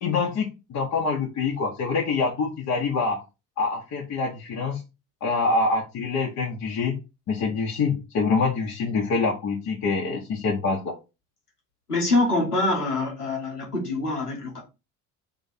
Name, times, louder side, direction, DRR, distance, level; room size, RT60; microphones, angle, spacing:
voice 1, 0.0-3.2 3.6-4.8 5.2-6.9 7.3-10.9, left 4 dB, 40° left, 1.0 m, -25 dB
voice 2, 11.9-14.6, left 2 dB, 90° left, 1.1 m, -25 dB
3.4 x 2.6 x 4.0 m
figure-of-eight pair, 55°, 45 cm